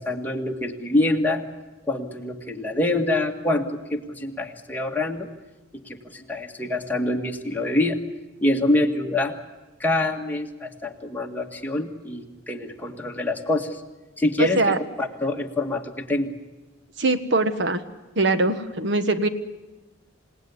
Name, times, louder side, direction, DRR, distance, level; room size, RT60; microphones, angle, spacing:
voice 1, 0.0-1.4 1.9-5.3 5.9-8.0 8.4-9.3 9.8-13.8 14.2-16.3, left 2 dB, 10° left, 1 dB, 1.9 m, -25 dB
voice 2, 14.4-14.8 17.0-17.8 18.2-19.3, right 2 dB, 65° right, 10 dB, 1.4 m, -22 dB
27.5 x 18.0 x 9.7 m, 1.1 s
head